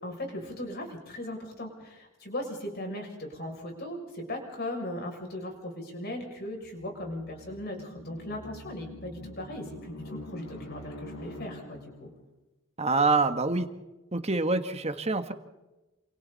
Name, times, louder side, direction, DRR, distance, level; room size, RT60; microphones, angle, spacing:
voice 1, 0.0-12.1, left 1 dB, 50° left, 1 dB, 6.9 m, -38 dB
sound 1, 6.6-12.2, left 1 dB, 70° left, 4.1 m, -45 dB
voice 2, 12.8-13.7 14.1-15.3, right 3 dB, 30° right, 8 dB, 1.5 m, -26 dB
28.5 x 28.0 x 4.2 m, 1.1 s
head